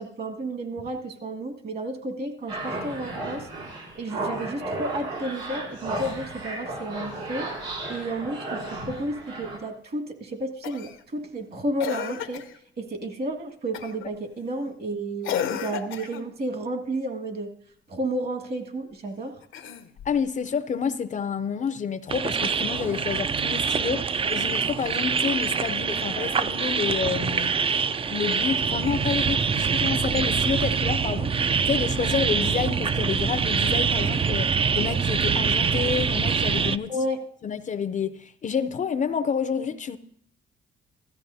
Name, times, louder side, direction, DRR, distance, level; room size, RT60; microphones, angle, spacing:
voice 1, 0.0-3.5 3.9-7.5 7.9-12.4 12.8-17.5 17.9-19.4 36.9-37.2, right 1 dB, 50° right, 1.8 m, -32 dB
sound 1, 2.5-9.6, right 2 dB, 90° right, 3.5 m, -34 dB
Cough, 10.6-11.0 11.8-12.6 13.7-14.1 15.2-16.3 19.4-20.2 21.7-21.8, left 9 dB, 80° left, 0.8 m, -32 dB
voice 2, 20.0-27.6 28.1-36.9 37.4-40.0, left 6 dB, 40° left, 0.5 m, -29 dB
sound 2, 22.1-36.8, right 6 dB, 30° right, 0.4 m, -25 dB
16.0 x 13.5 x 2.7 m
cardioid pair, 90°, 20 cm